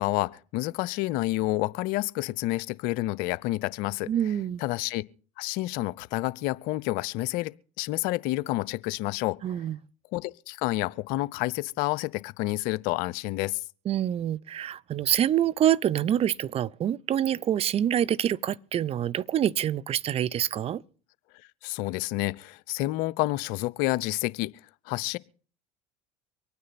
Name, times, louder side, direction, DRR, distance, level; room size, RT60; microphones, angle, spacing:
voice 1, 0.0-5.0 5.4-9.4 10.1-13.6 21.6-24.5 24.9-25.2, left 18 dB, 60° left, 0.6 m, -29 dB
voice 2, 4.1-4.6 9.4-9.8 13.9-20.8, right 10 dB, 40° right, 0.6 m, -26 dB
24.5 x 9.5 x 4.2 m
hypercardioid pair, 75°, 16 cm